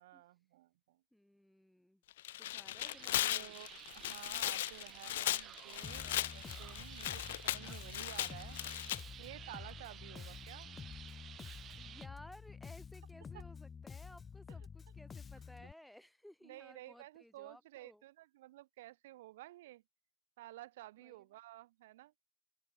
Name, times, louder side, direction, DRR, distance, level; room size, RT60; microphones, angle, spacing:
voice 1, 0.0-1.0 3.2-3.7 3.9-8.6 9.2-10.7 13.3-13.4 16.4-19.8 20.4-22.2, right 16 dB, 75° right, 1.9 m, -53 dB
voice 2, 1.1-2.0 2.4-3.6 11.8-18.0 21.0-21.3, left 1 dB, 5° left, 5.3 m, -58 dB
Tearing, 2.1-9.0, left 14 dB, 75° left, 0.5 m, -37 dB
sound 1, 2.8-12.1, right 11 dB, 45° right, 1.3 m, -53 dB
Bass guitar, 5.8-15.7, left 6 dB, 30° left, 0.9 m, -50 dB
hypercardioid pair, 85°, 0 cm